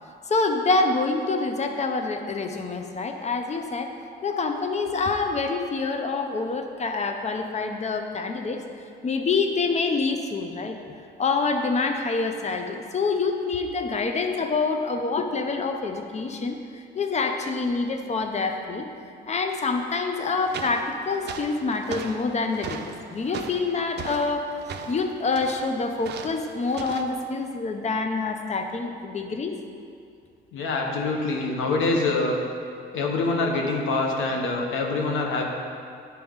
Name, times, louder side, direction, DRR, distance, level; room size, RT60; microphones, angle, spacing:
voice 1, 0.3-3.9 4.2-8.6 9.0-10.8 11.2-16.6 16.9-18.9 19.3-24.4 24.9-29.5, left 4 dB, 35° left, 5 dB, 0.7 m, -26 dB
sound 1, 20.3-27.2, right 6 dB, 60° right, 0.6 m, -39 dB
voice 2, 30.5-32.4 32.9-35.4, left 3 dB, 85° left, 0 dB, 1.1 m, -25 dB
10.5 x 4.5 x 3.6 m, 2.4 s
cardioid pair, 90°, 20 cm